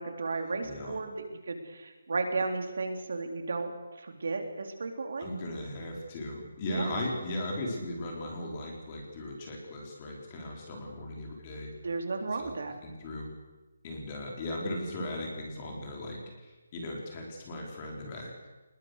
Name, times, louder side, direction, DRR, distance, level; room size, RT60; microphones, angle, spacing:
voice 1, 0.0-3.7 4.0-5.3 6.7-7.0 11.8-12.7, right 3 dB, 55° right, 5 dB, 3.4 m, -34 dB
voice 2, 0.6-1.0 5.2-11.7 12.4-12.5 12.8-13.3 13.8-18.3, left 1 dB, 20° left, 0 dB, 4.1 m, -37 dB
25.0 x 21.0 x 6.6 m, 1.2 s
hypercardioid pair, 175°, 0 cm